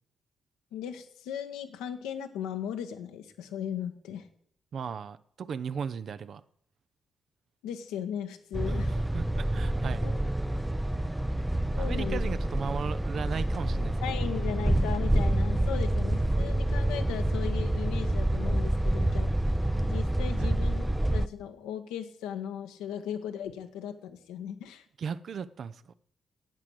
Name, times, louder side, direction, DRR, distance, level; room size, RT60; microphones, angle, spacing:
voice 1, 0.7-4.3 7.6-8.9 10.0-10.2 11.8-12.2 14.0-19.3 19.8-24.9, left 9 dB, 75° left, 7 dB, 1.2 m, -37 dB
voice 2, 4.7-6.4 8.9-10.1 11.7-14.3 20.4-20.5 25.0-25.8, right 6 dB, 55° right, 14 dB, 0.6 m, -36 dB
sound 1, 8.5-21.3, right 1 dB, 10° right, 0.6 m, -27 dB
10.5 x 8.8 x 7.8 m, 0.67 s
hypercardioid pair, 40°, 0 cm